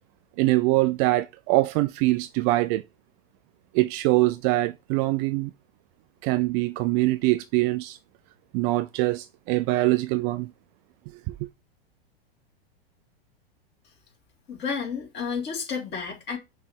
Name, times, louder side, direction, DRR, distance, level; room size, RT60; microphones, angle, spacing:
voice 1, 0.4-2.8 3.7-5.5 6.2-8.0 8.5-10.5 11.3-11.4, right 19 dB, 35° right, 0.4 m, -23 dB
voice 2, 14.5-16.4, left 6 dB, 35° left, 3.5 m, -31 dB
6.0 x 3.3 x 5.8 m
hypercardioid pair, 110°, 31 cm